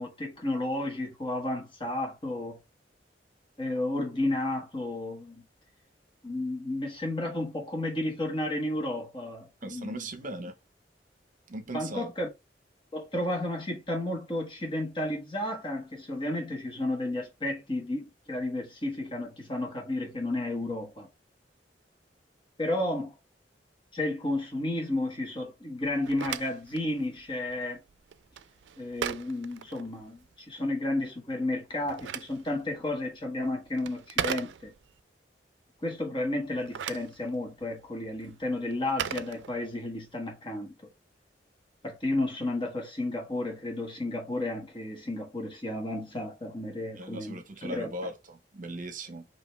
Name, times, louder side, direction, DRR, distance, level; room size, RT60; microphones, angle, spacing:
voice 1, 0.0-2.6 3.6-5.4 6.2-10.1 11.7-12.3 12.9-21.1 22.6-23.1 23.9-27.8 28.8-34.7 35.8-40.7 41.8-47.9, left 1 dB, 30° left, 1.3 m, -32 dB
voice 2, 9.6-10.6 11.5-12.1 47.0-49.3, right 1 dB, 50° right, 0.9 m, -38 dB
Telephone, 25.8-30.4 31.6-35.0 36.4-40.0, right 8 dB, 85° right, 0.4 m, -39 dB
5.0 x 3.0 x 3.2 m
head